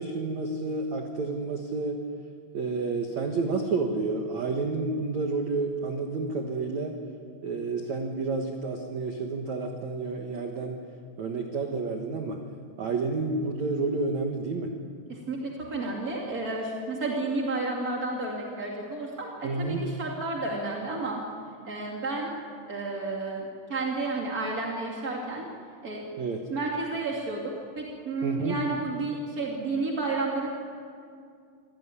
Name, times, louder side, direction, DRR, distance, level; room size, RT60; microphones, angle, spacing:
voice 1, 0.0-2.0 2.5-7.0 7.4-10.8 11.2-12.4 12.8-14.7 19.4-19.9 26.2-26.4 28.2-28.6, right 3 dB, 90° right, 3 dB, 1.5 m, -30 dB
voice 2, 15.1-21.2 21.6-22.3 22.7-25.5 25.8-26.0 26.5-30.5, right 3 dB, 40° right, -1 dB, 1.3 m, -31 dB
26.0 x 17.5 x 9.8 m, 2.3 s
omnidirectional pair, 5.7 m